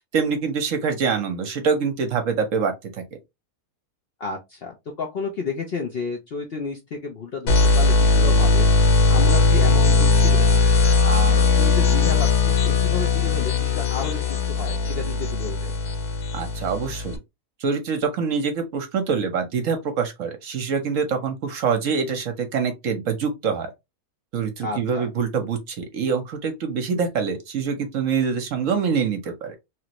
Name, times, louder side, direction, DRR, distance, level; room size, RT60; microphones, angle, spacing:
voice 1, 0.1-3.0 16.3-17.2 17.6-23.7 24.3-29.6, right 6 dB, 65° right, 1.0 m, -25 dB
voice 2, 4.2-8.7 9.1-10.4 11.0-15.7 24.6-25.1, left 4 dB, 55° left, 0.7 m, -31 dB
sound 1, 7.5-17.2, left 4 dB, 85° left, 1.2 m, -19 dB
3.1 x 2.5 x 2.9 m
omnidirectional pair, 1.6 m